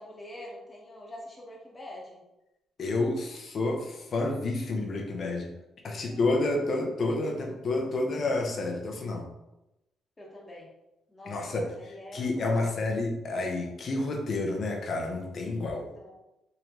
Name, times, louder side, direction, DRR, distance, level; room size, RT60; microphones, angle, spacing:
voice 1, 0.0-2.2 5.8-6.4 10.2-10.7 11.1-12.8 15.9-16.1, left 1 dB, 20° left, -4 dB, 1.2 m, -45 dB
voice 2, 2.8-5.5 5.8-9.2 11.3-11.7 12.1-15.8, left 2 dB, 55° left, 1 dB, 0.8 m, -29 dB
3.8 x 3.1 x 3.0 m, 0.94 s
cardioid pair, 90°, 0 cm